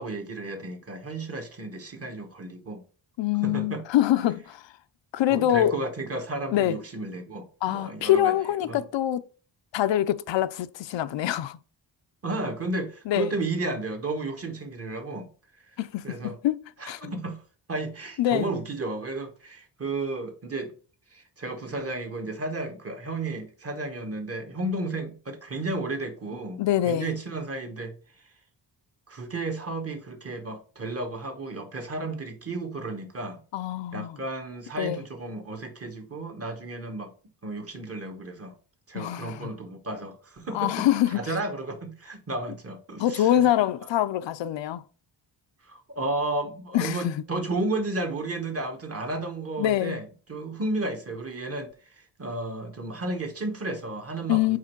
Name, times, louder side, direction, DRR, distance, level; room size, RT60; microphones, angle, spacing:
voice 1, 0.0-2.8 3.4-3.8 5.3-8.3 8.6-8.8 12.2-15.3 16.0-16.4 16.8-17.4 17.7-20.7 21.1-28.0 29.1-33.4 33.9-37.1 37.4-38.6 38.9-40.9 41.1-43.5 45.6-54.6, right 2 dB, 35° right, 1.1 m, -33 dB
voice 2, 3.2-4.6 5.1-5.8 6.5-6.8 7.6-9.2 9.7-11.6 13.1-13.3 15.8-17.1 18.2-18.5 26.6-27.1 33.5-34.2 34.8-35.0 38.9-39.5 40.5-41.2 43.0-44.8 46.7-47.2 49.6-50.0 54.3-54.6, left 12 dB, 85° left, 0.6 m, -25 dB
4.9 x 4.3 x 4.4 m
wide cardioid pair, 135°, 43 cm